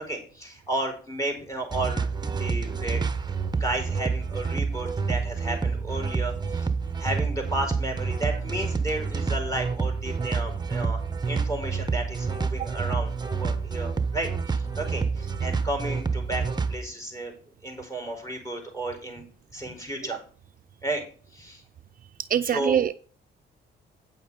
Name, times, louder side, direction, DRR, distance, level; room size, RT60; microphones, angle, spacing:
voice 1, 0.0-2.1 2.4-3.0 3.5-6.7 7.0-11.0 11.3-16.4 16.7-17.3 17.6-19.2 19.5-20.2 20.8-21.0 21.3-21.6 22.4-22.8, right 1 dB, 15° left, 3 dB, 5.2 m, -33 dB
sound 1, 1.7-16.8, right 5 dB, 20° right, 1.0 m, -28 dB
voice 2, 22.2-22.9, right 9 dB, 45° right, 9 dB, 0.5 m, -24 dB
9.2 x 7.1 x 4.9 m, 0.43 s
cardioid pair, 90°, 20 cm